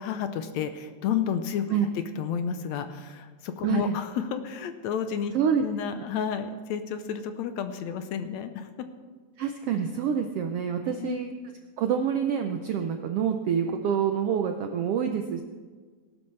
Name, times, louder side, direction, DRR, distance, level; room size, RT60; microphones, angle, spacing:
voice 1, 0.0-1.8 2.2-5.3 5.6-8.9 11.0-11.2, left 8 dB, 75° left, 8 dB, 1.9 m, -31 dB
voice 2, 3.6-4.0 5.3-5.6 9.4-11.3 11.8-15.4, right 8 dB, 80° right, 5 dB, 1.3 m, -27 dB
19.0 x 11.5 x 3.3 m, 1.5 s
omnidirectional pair, 3.4 m